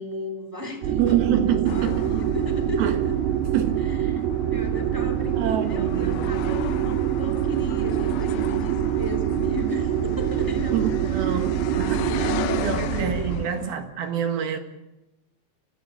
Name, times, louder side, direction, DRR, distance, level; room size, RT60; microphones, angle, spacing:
voice 1, 0.0-3.1 3.9-4.2 4.5-10.8 11.3-11.4 11.7-13.4, left 1 dB, 5° right, 1.7 m, -35 dB
sound 1, 0.8-13.5, right 10 dB, 85° right, 3.3 m, -25 dB
voice 2, 0.9-2.3 2.8-3.1 3.5-3.9 5.4-6.3 10.7-14.6, right 9 dB, 65° right, 3.4 m, -27 dB
sound 2, 1.7-13.7, left 10 dB, 80° left, 3.3 m, -37 dB
25.0 x 15.5 x 8.2 m
omnidirectional pair, 5.0 m